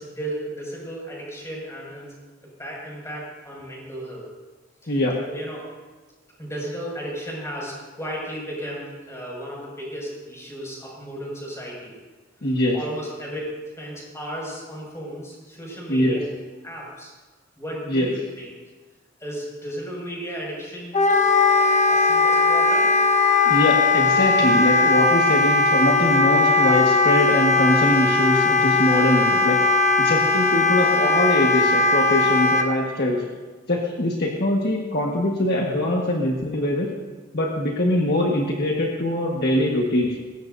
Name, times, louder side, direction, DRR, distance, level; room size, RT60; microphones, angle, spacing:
voice 1, 0.0-2.1 2.6-4.3 4.8-4.9 5.3-5.7 6.4-11.9 12.7-13.5 13.8-16.2 16.6-17.1 17.6-18.5 19.2-21.0 21.9-22.9, equal, 15° left, -4 dB, 6.1 m, -34 dB
voice 2, 4.9-5.2 12.4-12.8 15.9-16.2 17.9-18.1 23.4-33.3 33.7-36.9 37.3-40.2, left 1 dB, 55° left, -1 dB, 1.5 m, -22 dB
Wind instrument woodwind instrument, 20.9-32.7, left 3 dB, 35° left, 1.2 m, -19 dB
21.0 x 17.0 x 2.7 m, 1.3 s
head